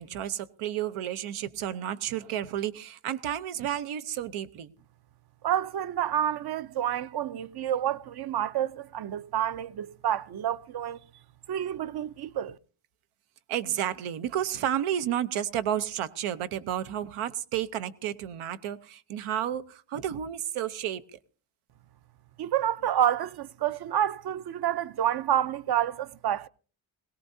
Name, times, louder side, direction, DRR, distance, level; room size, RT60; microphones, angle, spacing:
voice 1, 0.0-4.7 13.5-21.2, right 10 dB, 90° right, 0.9 m, -31 dB
voice 2, 5.4-11.0 11.5-12.6 22.4-26.5, right 10 dB, 50° right, 0.6 m, -29 dB
21.0 x 17.5 x 2.7 m
cardioid pair, 115°, 49 cm